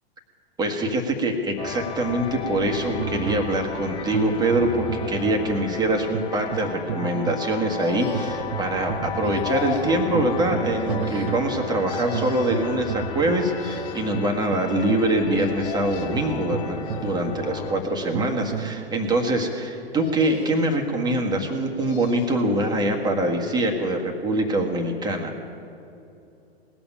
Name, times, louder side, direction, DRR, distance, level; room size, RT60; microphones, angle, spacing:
voice 1, 0.6-25.3, right 1 dB, 15° right, 1 dB, 1.6 m, -24 dB
sound 1, 1.6-17.8, left 8 dB, 15° left, 0.6 m, -35 dB
sound 2, 3.0-18.9, right 10 dB, 60° right, 0.6 m, -33 dB
sound 3, 7.8-8.6 9.2-10.1 10.8-11.6 11.9-12.7 13.3-14.2 15.4-16.3 16.8-17.5 18.1-18.9 19.9-20.8 21.5-22.4 22.8-22.9, left 4 dB, 55° left, 1.8 m, -37 dB
19.0 x 7.1 x 10.0 m, 2.7 s
figure-of-eight pair, 105°, 32 cm